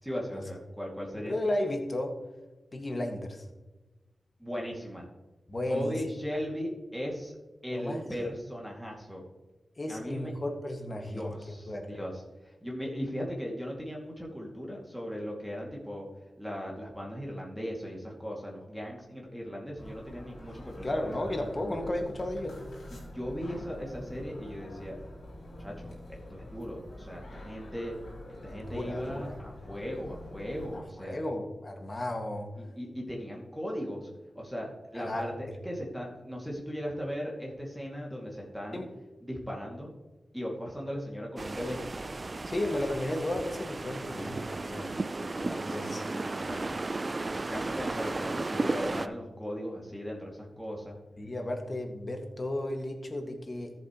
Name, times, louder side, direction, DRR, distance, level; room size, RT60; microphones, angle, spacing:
voice 1, 0.0-1.4 4.4-5.1 5.7-7.3 7.6-9.2 9.9-10.3 11.0-16.1 16.4-21.1 22.9-25.0 25.6-28.0 28.4-31.2 32.6-38.8 39.2-39.9 40.3-41.8 44.0-46.7 47.3-51.0, equal, ahead, -2 dB, 2.4 m, -38 dB
voice 2, 1.2-2.1 2.7-3.5 5.5-6.0 7.7-8.0 9.8-12.0 20.8-22.6 28.5-29.3 30.7-32.5 34.9-35.3 38.7-38.9 42.5-44.5 45.7-46.0 51.2-53.7, left 1 dB, 40° left, 3 dB, 1.9 m, -34 dB
sound 1, 19.8-30.8, left 1 dB, 90° left, 3.4 m, -46 dB
sound 2, 41.4-49.1, right 2 dB, 40° right, 0.4 m, -34 dB
14.0 x 7.5 x 3.1 m, 1.1 s
cardioid pair, 55°, 0 cm